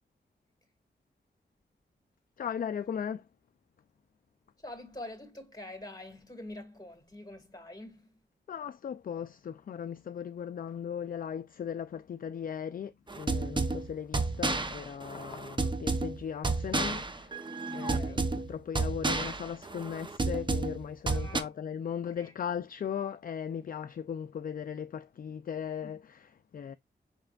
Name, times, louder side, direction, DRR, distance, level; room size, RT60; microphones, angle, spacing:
voice 1, 2.4-3.3 8.5-26.8, left 8 dB, 50° left, 0.4 m, -38 dB
voice 2, 4.6-8.2 17.9-18.3 21.1-21.5 22.2-22.3 25.8-25.9, left 1 dB, 20° left, 2.1 m, -45 dB
sound 1, 13.1-21.4, right 3 dB, 25° right, 0.8 m, -31 dB
5.9 x 3.3 x 2.4 m
cardioid pair, 50°, 19 cm